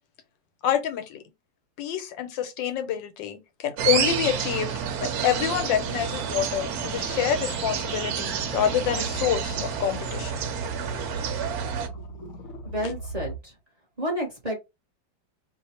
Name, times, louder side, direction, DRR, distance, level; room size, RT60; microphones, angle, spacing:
voice 1, 0.6-1.2 1.8-4.7 5.0-10.4, left 9 dB, 80° left, 1.4 m, -27 dB
sound 1, 3.8-11.9, right 7 dB, 65° right, 1.0 m, -30 dB
sound 2, 5.8-13.4, right 2 dB, 60° left, 1.0 m, -38 dB
voice 2, 12.6-13.6 14.0-14.6, equal, 30° right, 0.8 m, -30 dB
3.1 x 2.2 x 4.1 m
omnidirectional pair, 2.0 m